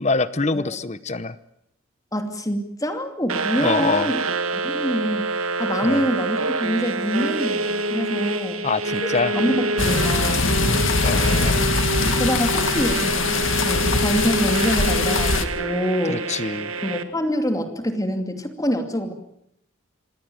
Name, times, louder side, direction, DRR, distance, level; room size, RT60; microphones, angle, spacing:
voice 1, 0.0-1.4 3.6-4.1 5.8-6.0 8.6-9.3 11.0-11.6 16.1-16.7, left 3 dB, 30° left, 15 dB, 0.9 m, -24 dB
voice 2, 2.1-4.2 4.5-8.6 9.3-10.5 12.0-16.2 16.8-19.1, equal, 15° left, 6 dB, 2.6 m, -25 dB
sound 1, 3.3-17.0, right 3 dB, 80° right, 1.8 m, -26 dB
sound 2, 9.8-15.4, left 4 dB, 65° left, 2.1 m, -22 dB
26.0 x 18.0 x 9.1 m, 0.78 s
head